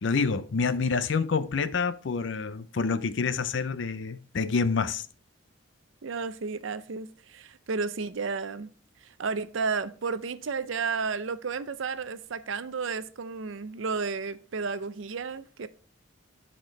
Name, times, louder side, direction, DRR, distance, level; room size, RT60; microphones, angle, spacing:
voice 1, 0.0-5.1, left 4 dB, 65° left, 0.5 m, -27 dB
voice 2, 6.0-8.7 9.2-15.7, right 4 dB, 75° right, 0.5 m, -32 dB
12.0 x 4.3 x 3.2 m
head